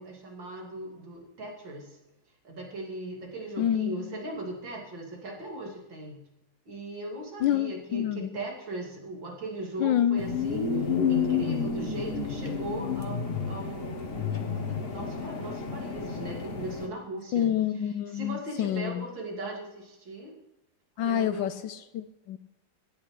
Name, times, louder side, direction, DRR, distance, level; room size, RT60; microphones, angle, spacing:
voice 1, 0.0-2.0 2.4-6.2 6.7-14.3 14.5-17.5 18.1-20.3 21.0-21.5, right 1 dB, 90° right, -1 dB, 3.2 m, -39 dB
voice 2, 3.6-4.0 7.4-8.3 9.8-10.2 17.3-19.1 21.0-22.4, left 10 dB, 80° left, 10 dB, 1.3 m, -27 dB
sound 1, 10.2-16.9, left 6 dB, 35° left, 1.1 m, -30 dB
16.5 x 10.0 x 3.2 m, 0.90 s
omnidirectional pair, 2.0 m